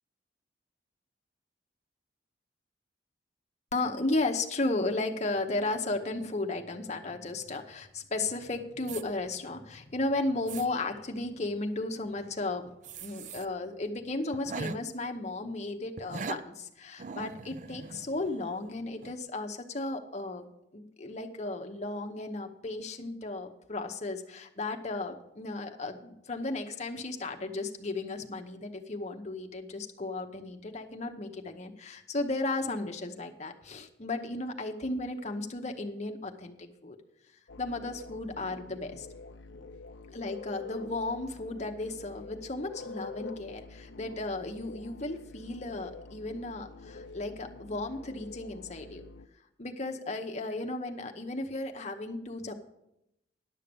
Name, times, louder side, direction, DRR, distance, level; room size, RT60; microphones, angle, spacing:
voice 1, 3.7-12.7 13.0-20.4 20.7-37.0 37.6-39.1 40.1-49.0 49.6-52.6, left 2 dB, 40° left, 4 dB, 0.9 m, -35 dB
sound 1, 8.9-9.0 9.7-9.8 10.3-10.7 12.8-13.5 13.8-13.9 14.3-14.8 16.0-16.4 17.0-18.7 19.0-19.2, right 4 dB, 40° right, 0.4 m, -40 dB
sound 2, 37.5-49.3, left 3 dB, 85° left, 0.6 m, -46 dB
11.0 x 6.6 x 6.9 m, 0.83 s
head